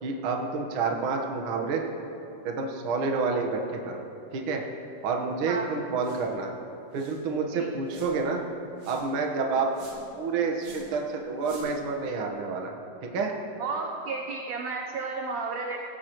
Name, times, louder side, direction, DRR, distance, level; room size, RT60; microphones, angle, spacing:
voice 1, 0.0-1.8 2.4-4.0 4.3-4.6 5.0-6.5 6.9-8.4 8.9-9.8 10.1-12.7 13.0-13.4, right 4 dB, 60° right, 1 dB, 1.4 m, -29 dB
sound 1, 6.0-6.3 6.6-6.7 6.9-7.3 7.9-8.3 8.8-9.1 9.7-10.1 10.6-11.0 11.4-11.9, right 2 dB, 40° right, 2.8 m, -49 dB
voice 2, 13.6-15.8, right 4 dB, 75° right, 2 dB, 1.6 m, -32 dB
17.5 x 16.5 x 3.1 m, 2.8 s
omnidirectional pair, 4.0 m